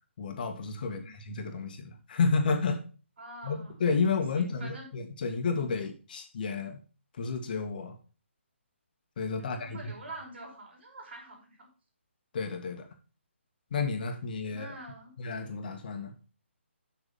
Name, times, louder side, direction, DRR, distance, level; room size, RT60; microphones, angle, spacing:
voice 1, 0.2-2.8 3.4-6.8 7.2-8.0 9.2-9.9 12.3-12.9 13.7-14.7 15.2-16.2, left 4 dB, 45° left, 5 dB, 1.8 m, -31 dB
voice 2, 3.2-3.8 4.3-4.9 5.5-5.6 9.4-11.7 14.5-15.1, right 2 dB, 60° right, 0 dB, 4.9 m, -46 dB
8.2 x 6.1 x 5.7 m, 0.35 s
figure-of-eight pair, 150°, 7 cm